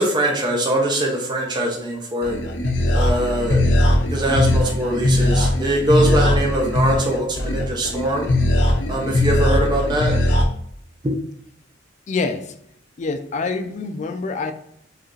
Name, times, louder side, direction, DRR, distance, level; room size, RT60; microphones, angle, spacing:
voice 1, 0.0-2.4 2.9-3.6 4.1-8.3 8.9-10.1 11.0-11.1, right 1 dB, 25° right, -2 dB, 0.6 m, -22 dB
sound 1, 2.2-10.4, left 1 dB, 70° left, 0.7 m, -19 dB
voice 2, 12.1-12.5 13.0-14.5, left 4 dB, 40° left, 7 dB, 0.4 m, -26 dB
4.8 x 2.4 x 3.1 m, 0.71 s
head